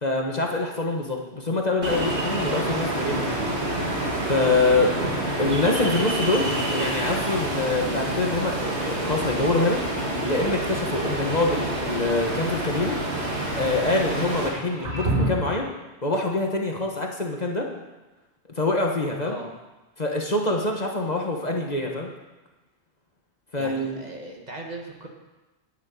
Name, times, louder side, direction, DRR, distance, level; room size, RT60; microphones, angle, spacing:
voice 1, 0.0-3.4 4.3-4.9 5.4-9.8 10.2-13.0 13.5-15.7 16.0-17.7 18.6-19.4 20.0-22.1 23.5-24.0, left 2 dB, 40° left, 1 dB, 1.5 m, -25 dB
Ocean, 1.8-14.5, right 1 dB, 75° right, 2.4 m, -27 dB
sound 1, 12.2-13.0 14.4-15.7, right 2 dB, 60° right, 6.2 m, -29 dB
voice 2, 23.6-25.1, right 2 dB, 40° right, 1 dB, 1.8 m, -38 dB
10.5 x 7.5 x 9.4 m, 1.1 s
omnidirectional pair, 1.1 m